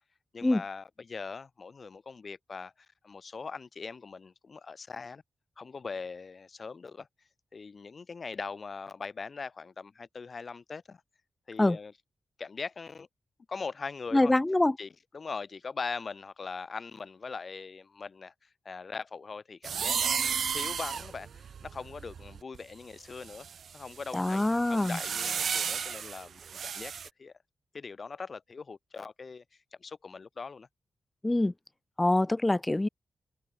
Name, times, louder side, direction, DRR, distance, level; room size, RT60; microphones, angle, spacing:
voice 1, 0.3-2.7 3.0-5.2 5.6-7.1 7.5-11.0 11.5-11.9 12.4-13.1 13.5-14.3 14.8-23.5 23.7-26.9 27.2-27.3 27.7-29.4 29.8-30.7, left 4 dB, 50° left, 0.8 m, -41 dB
voice 2, 14.1-14.7 24.1-25.0 31.2-31.5 32.0-32.9, left 2 dB, 20° left, 0.5 m, -25 dB
sound 1, 19.6-22.6 23.2-27.1, right 7 dB, 75° right, 0.6 m, -34 dB
cardioid pair, 70°, 0 cm